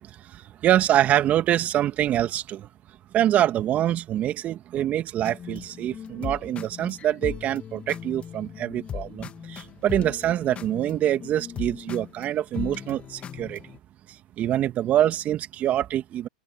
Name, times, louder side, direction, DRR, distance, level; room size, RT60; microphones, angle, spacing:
voice 1, 0.0-2.7 3.1-13.6 14.1-16.3, right 12 dB, 35° right, 2.4 m, -25 dB
sound 1, 5.2-13.8, left 9 dB, 25° left, 2.4 m, -38 dB
open air
hypercardioid pair, 105°, 4 cm